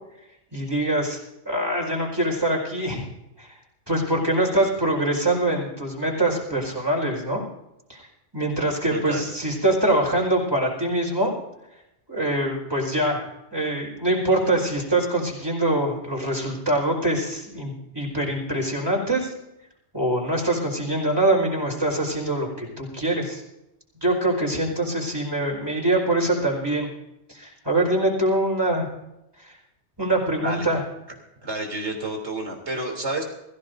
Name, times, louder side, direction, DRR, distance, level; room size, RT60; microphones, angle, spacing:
voice 1, 0.5-1.2 1.4-3.1 3.4-3.5 3.9-7.4 7.9-8.0 8.3-11.4 12.1-19.3 19.9-23.4 24.0-26.9 27.3-28.9 29.4-29.5 30.0-30.8, right 1 dB, 20° right, -2 dB, 4.8 m, -24 dB
voice 2, 8.9-9.3 30.4-30.7 31.4-33.2, right 2 dB, 70° right, 2 dB, 3.7 m, -30 dB
23.5 x 15.5 x 2.7 m, 0.91 s
omnidirectional pair, 1.2 m